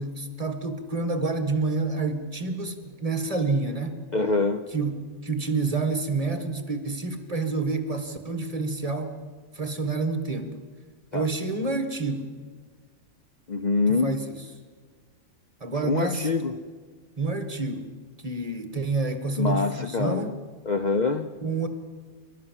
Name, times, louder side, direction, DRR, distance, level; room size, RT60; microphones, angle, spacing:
voice 1, 0.0-4.0 4.7-9.2 9.5-10.6 11.1-12.3 13.9-14.4 15.6-16.3 17.2-17.9 18.2-20.3 21.4-21.7, right 3 dB, 30° right, 8 dB, 1.7 m, -28 dB
voice 2, 4.1-4.6 11.1-11.3 13.5-14.1 15.8-16.5 19.4-20.3 20.6-21.3, left 4 dB, 40° left, 7 dB, 0.8 m, -25 dB
28.5 x 12.5 x 7.4 m, 1.5 s
omnidirectional pair, 1.3 m